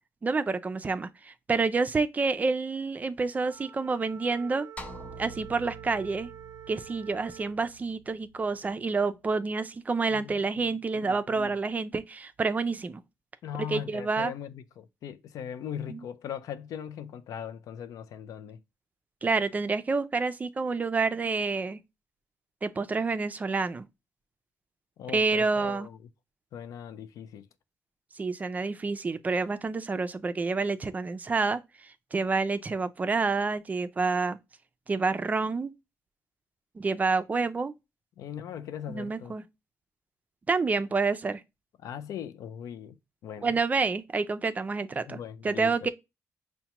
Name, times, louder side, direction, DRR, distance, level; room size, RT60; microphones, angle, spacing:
voice 1, 0.2-4.7 5.2-6.3 6.7-13.0 13.7-14.3 15.9-16.0 19.2-21.8 22.6-23.9 25.1-25.9 28.2-31.6 32.1-34.4 34.9-35.7 36.8-37.7 38.9-39.4 40.5-41.4 43.4-45.2 45.4-45.9, right 4 dB, 25° right, 0.3 m, -28 dB
Wind instrument woodwind instrument, 3.3-7.6, right 9 dB, 90° right, 0.5 m, -47 dB
sound 1, 4.8-9.2, right 1 dB, 25° left, 0.6 m, -47 dB
voice 2, 10.1-11.6 13.4-18.6 25.0-26.0 26.5-27.5 38.2-39.3 41.8-43.0 43.2-43.6 45.1-45.9, left 9 dB, 85° left, 0.4 m, -40 dB
5.6 x 2.1 x 2.9 m
cardioid pair, 115°, 6 cm